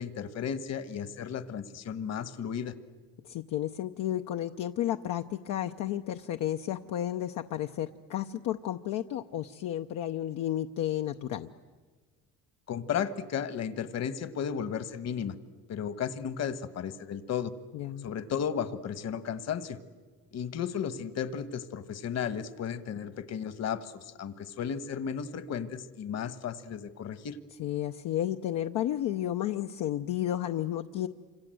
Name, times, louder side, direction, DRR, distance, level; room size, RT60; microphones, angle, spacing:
voice 1, 0.0-2.7 12.7-15.4 15.7-17.5 18.0-19.8 20.3-27.4, left 8 dB, 55° left, 12 dB, 1.5 m, -34 dB
voice 2, 3.2-11.5 17.7-18.1 27.6-31.1, left 12 dB, 70° left, 5 dB, 0.8 m, -32 dB
28.5 x 26.0 x 7.9 m, 1.4 s
cardioid pair, 105°, 32 cm